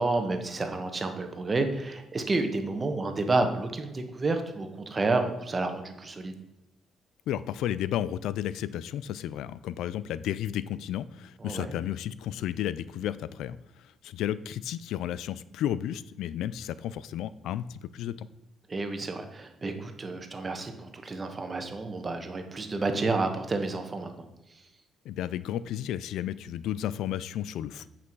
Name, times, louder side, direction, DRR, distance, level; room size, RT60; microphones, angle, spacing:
voice 1, 0.0-6.3 11.4-11.7 18.7-24.1, right 3 dB, 30° right, 6 dB, 1.3 m, -30 dB
voice 2, 7.3-18.3 25.0-27.9, left 11 dB, 85° left, 16 dB, 0.3 m, -33 dB
8.4 x 5.9 x 4.7 m, 0.92 s
cardioid pair, 90°, 0 cm